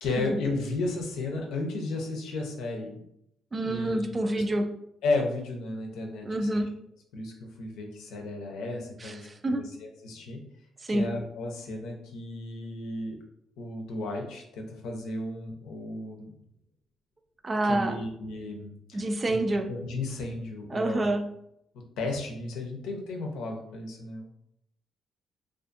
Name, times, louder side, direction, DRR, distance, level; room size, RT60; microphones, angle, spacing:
voice 1, 0.0-3.0 3.6-4.4 5.0-6.6 7.1-10.4 10.9-13.2 13.6-16.3 17.7-19.0 19.3-19.4 19.7-21.1 22.0-24.3, left 2 dB, 90° left, 2 dB, 0.6 m, -34 dB
voice 2, 3.5-4.8 6.2-6.7 9.0-9.7 10.8-11.1 17.4-18.0 18.9-19.7 20.7-21.3, right 1 dB, 30° right, 7 dB, 0.3 m, -28 dB
2.5 x 2.4 x 2.5 m, 0.75 s
cardioid pair, 90°, 0 cm